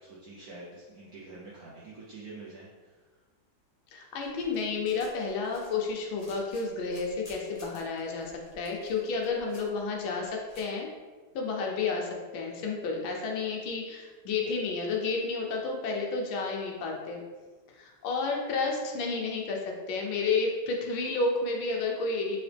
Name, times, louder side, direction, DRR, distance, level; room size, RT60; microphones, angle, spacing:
voice 1, 0.0-3.0, right 3 dB, 70° right, -6 dB, 0.9 m, -46 dB
voice 2, 3.9-10.9 11.3-17.2 17.8-22.4, left 4 dB, 75° left, 0 dB, 1.4 m, -31 dB
sound 1, 4.2-10.6, left 1 dB, 40° left, 0.5 m, -54 dB
4.0 x 2.8 x 3.3 m, 1.3 s
omnidirectional pair, 2.2 m